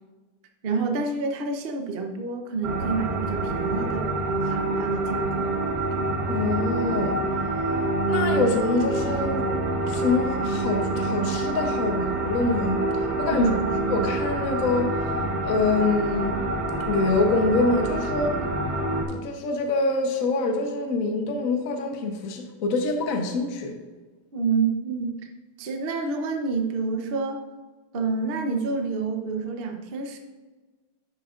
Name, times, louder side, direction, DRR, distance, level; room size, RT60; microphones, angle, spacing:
voice 1, 0.6-5.5 13.3-13.7 24.3-25.2 25.6-27.4 27.9-30.2, right 4 dB, 85° right, 4 dB, 0.5 m, -28 dB
sound 1, 2.6-19.0, right 2 dB, 50° right, 1.6 m, -26 dB
voice 2, 6.3-7.2 8.1-9.5 9.9-12.8 13.2-13.5 13.9-14.9 15.4-16.4 16.9-18.3 19.1-23.8, left 3 dB, 50° left, 4 dB, 1.0 m, -25 dB
10.5 x 7.3 x 2.5 m, 1.3 s
omnidirectional pair, 2.4 m